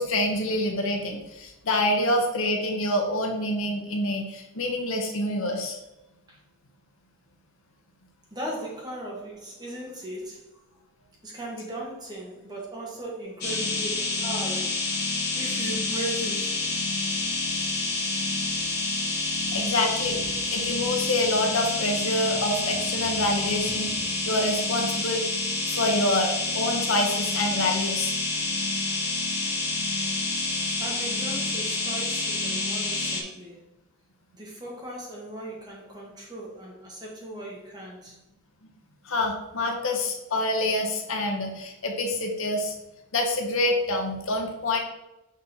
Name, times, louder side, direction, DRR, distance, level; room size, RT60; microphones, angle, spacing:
voice 1, 0.0-5.8 19.5-20.2 20.5-23.9 24.3-25.2 25.7-28.1 39.0-42.7 43.1-44.8, left 1 dB, 75° left, 2 dB, 1.1 m, -26 dB
voice 2, 8.3-10.5 11.2-15.1 15.3-16.7 19.6-19.7 30.8-33.6 34.3-38.2, right 1 dB, 20° right, -3 dB, 1.5 m, -37 dB
sound 1, 13.4-33.2, left 2 dB, 50° left, 1.3 m, -28 dB
6.2 x 4.2 x 4.1 m, 0.95 s
head